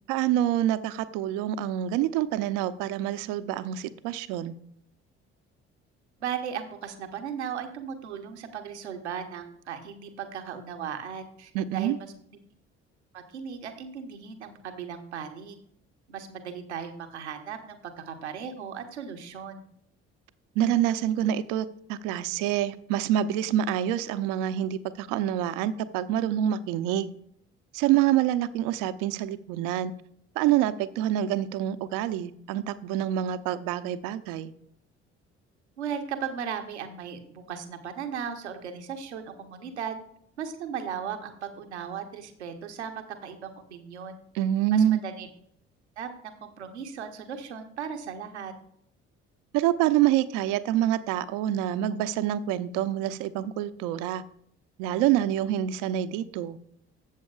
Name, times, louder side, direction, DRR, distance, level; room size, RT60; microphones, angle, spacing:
voice 1, 0.1-4.5 11.5-12.0 20.6-27.1 27.7-29.9 30.4-34.5 44.3-45.0 49.5-54.2 54.8-56.6, right 11 dB, 70° right, 12 dB, 0.7 m, -26 dB
voice 2, 6.2-12.4 13.1-15.6 16.1-19.6 35.8-39.9 40.4-44.2 44.7-45.3 46.0-46.1 46.4-48.5, right 7 dB, 85° right, 6 dB, 0.9 m, -37 dB
13.0 x 7.7 x 2.4 m, 0.69 s
figure-of-eight pair, 50°, 33 cm